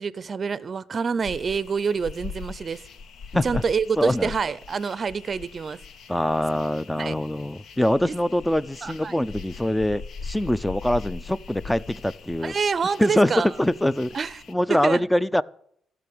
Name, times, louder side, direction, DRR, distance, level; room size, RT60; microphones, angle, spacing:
voice 1, 0.0-2.8 3.4-5.8 7.0-7.1 8.1-8.2 8.8-9.1 12.4-13.5 14.1-14.4 14.7-15.1, right 5 dB, 40° right, 0.5 m, -27 dB
sound 1, 1.2-14.5, left 5 dB, 70° left, 0.8 m, -41 dB
voice 2, 4.0-4.3 6.1-12.5 13.0-13.3 13.6-14.1 14.5-15.4, left 1 dB, 5° left, 0.5 m, -24 dB
14.0 x 6.1 x 7.7 m
cardioid pair, 90°, 0 cm